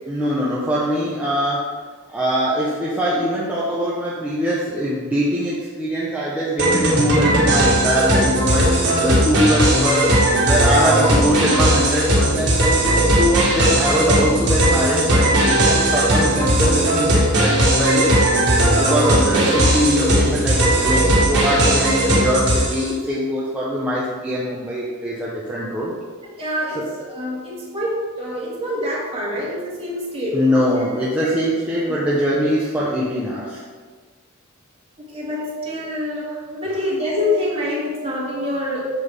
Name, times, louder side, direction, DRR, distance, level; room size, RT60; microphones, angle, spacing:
voice 1, 0.1-1.7 2.1-10.1 10.4-18.1 18.7-25.9 26.7-26.9 30.3-33.6, equal, 5° right, -8 dB, 1.0 m, -22 dB
sound 1, 6.6-22.9, right 1 dB, 55° right, 1.9 m, -17 dB
voice 2, 26.2-30.4 31.9-32.0 35.0-38.9, left 1 dB, 25° right, -6 dB, 2.2 m, -26 dB
7.5 x 7.4 x 3.7 m, 1.5 s
head